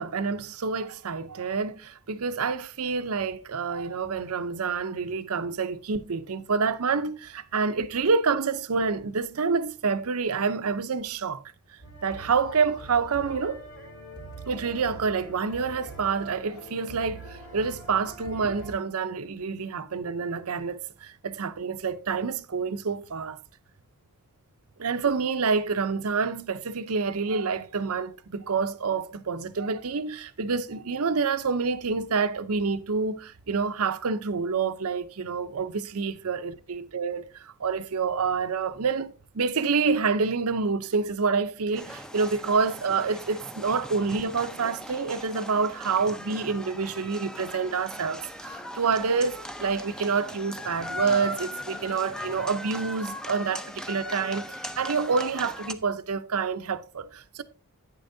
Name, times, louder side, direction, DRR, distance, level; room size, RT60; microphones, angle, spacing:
voice 1, 0.0-11.4 12.0-13.6 14.5-23.4 24.8-57.4, right 5 dB, 75° right, 0.7 m, -28 dB
sound 1, 11.8-18.7, right 2 dB, 75° left, 3.6 m, -44 dB
sound 2, 41.7-55.7, left 1 dB, 5° left, 0.5 m, -39 dB
10.5 x 9.1 x 2.7 m
head